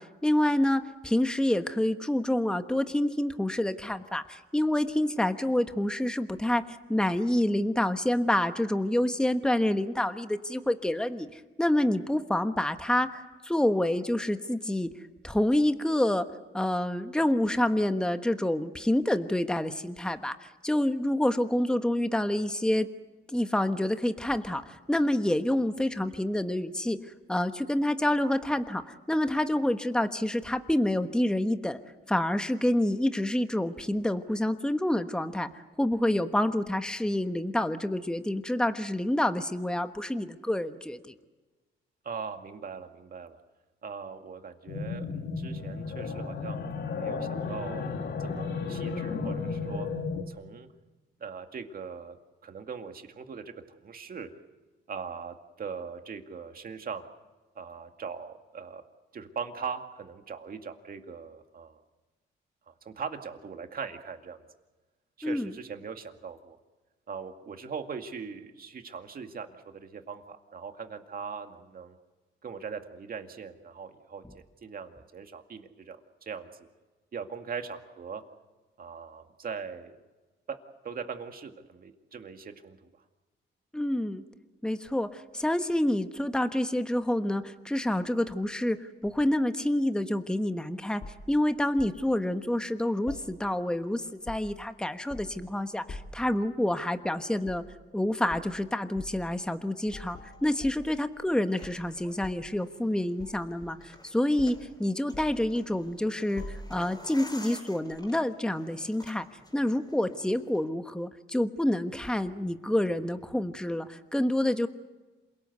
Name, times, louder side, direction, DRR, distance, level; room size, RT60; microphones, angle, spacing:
voice 1, 0.0-14.9 15.2-16.3 16.5-22.9 23.3-31.8 32.1-41.1 65.2-65.5 83.7-84.2 84.6-91.0 91.3-97.6 97.9-109.3 109.5-114.7, left 1 dB, 5° left, 8 dB, 1.2 m, -28 dB
voice 2, 42.0-43.4 43.8-49.9 50.3-50.7 51.2-52.2 52.4-53.5 53.8-54.3 54.9-57.0 57.6-58.8 59.1-61.8 62.7-64.4 65.2-66.6 67.1-72.0 72.4-76.5 77.1-78.2 78.8-80.0 80.5-80.6 80.8-82.9, right 6 dB, 45° right, 6 dB, 2.2 m, -40 dB
sound 1, 44.7-50.2, left 4 dB, 60° left, 2.1 m, -33 dB
sound 2, 91.0-92.0 93.1-93.8 94.1-94.7 95.1-95.5 95.9-96.3 97.4-97.7 98.3-98.5 98.9-99.2 99.9-101.3 101.6-102.5 103.2-104.0 104.4-104.7 105.1-105.9 106.4-107.0 107.9-108.1, left 2 dB, 40° left, 2.8 m, -45 dB
sound 3, 99.8-110.6, left 1 dB, 20° left, 4.9 m, -52 dB
27.5 x 18.5 x 8.2 m, 1.2 s
cardioid pair, 90°, 20 cm